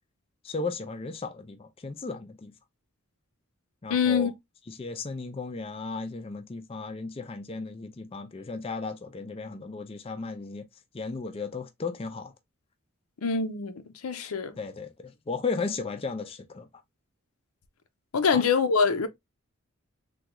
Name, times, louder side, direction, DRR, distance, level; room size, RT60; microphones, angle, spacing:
voice 1, 0.4-2.5 3.8-4.3 4.7-10.6 10.9-12.3 14.6-16.7 18.3-18.4, left 4 dB, 25° left, 0.3 m, -35 dB
voice 2, 3.9-4.3 13.2-14.5 18.1-19.1, left 5 dB, 90° left, 0.6 m, -25 dB
3.6 x 2.3 x 2.9 m
head